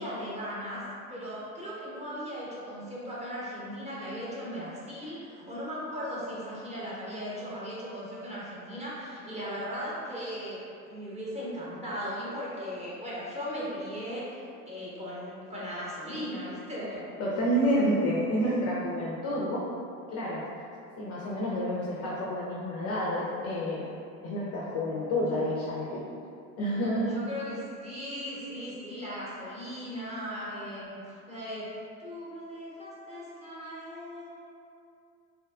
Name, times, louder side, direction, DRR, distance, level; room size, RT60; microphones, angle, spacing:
voice 1, 0.0-17.0 27.1-31.7 32.0-34.3, equal, 15° right, -8 dB, 0.8 m, -38 dB
voice 2, 17.2-19.7 20.1-20.4 21.0-23.9 24.2-26.0 26.6-27.1, equal, 35° left, -6 dB, 0.4 m, -29 dB
2.7 x 2.2 x 2.3 m, 2.5 s
hypercardioid pair, 80°, 44 cm